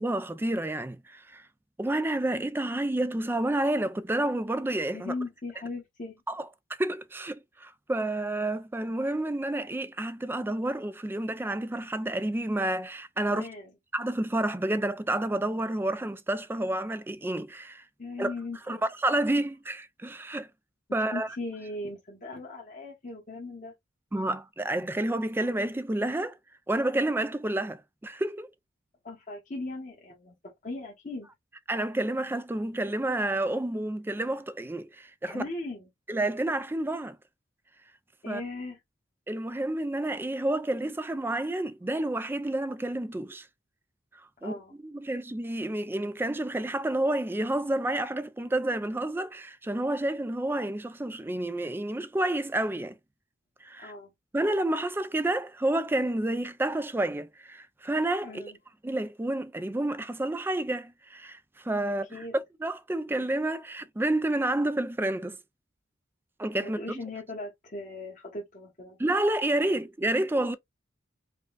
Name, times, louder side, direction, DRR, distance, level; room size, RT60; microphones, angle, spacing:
voice 1, 0.0-1.4 1.8-5.1 6.3-6.5 6.8-13.5 13.9-17.8 18.2-18.3 18.7-20.5 20.9-21.3 24.1-26.4 26.7-28.5 31.7-35.4 36.1-37.2 38.3-38.4 39.3-43.5 44.4-53.0 53.6-53.9 54.3-58.4 58.8-65.4 66.4-67.0 69.0-70.6, right 1 dB, 10° right, 0.3 m, -29 dB
voice 2, 4.9-6.2 13.3-13.7 18.0-18.8 21.1-23.7 29.0-31.3 35.3-35.9 38.2-38.8 44.4-44.7 53.8-54.1 58.2-58.6 62.1-62.4 66.6-69.0, left 2 dB, 40° left, 1.1 m, -38 dB
5.0 x 2.2 x 2.4 m
head